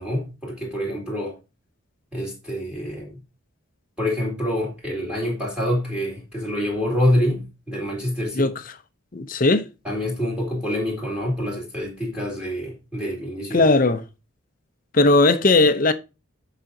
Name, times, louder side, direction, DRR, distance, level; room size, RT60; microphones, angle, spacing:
voice 1, 0.0-1.4 2.1-3.2 4.0-8.5 9.8-13.7, left 1 dB, 5° right, 2.4 m, -26 dB
voice 2, 9.1-9.7 13.5-14.0 14.9-15.9, left 2 dB, 40° left, 0.6 m, -17 dB
14.5 x 5.1 x 2.7 m
head